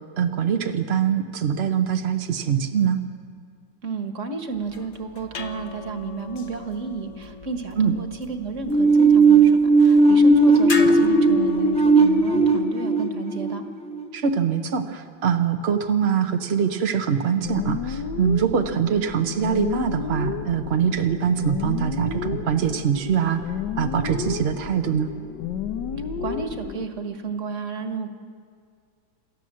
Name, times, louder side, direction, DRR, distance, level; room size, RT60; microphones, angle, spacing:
voice 1, 0.2-3.0 7.8-7.9 10.7-11.0 14.1-23.4 23.8-25.1, right 7 dB, 55° right, 5 dB, 0.7 m, -23 dB
voice 2, 3.8-13.6 26.2-28.1, right 4 dB, 40° right, 6 dB, 1.6 m, -32 dB
sound 1, 4.5-12.6, left 4 dB, 45° left, 1.1 m, -38 dB
sound 2, 8.7-14.4, right 3 dB, 5° left, 0.5 m, -17 dB
sound 3, 17.4-26.9, left 7 dB, 65° left, 1.4 m, -32 dB
28.0 x 13.5 x 7.5 m, 2.2 s
omnidirectional pair, 2.2 m